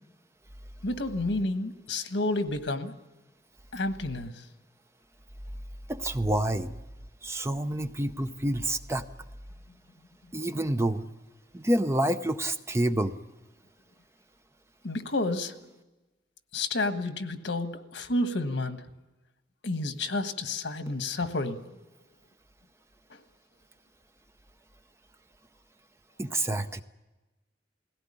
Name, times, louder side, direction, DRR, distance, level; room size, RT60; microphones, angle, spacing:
voice 1, 0.8-2.9 3.7-4.4 14.8-15.5 16.5-18.8 19.6-21.6 23.1-23.2, left 2 dB, 85° left, 1.4 m, -30 dB
voice 2, 5.9-6.7 7.2-9.1 10.3-11.1 11.5-13.1 26.2-26.8, right 1 dB, 15° right, 0.6 m, -28 dB
19.5 x 17.0 x 10.0 m
head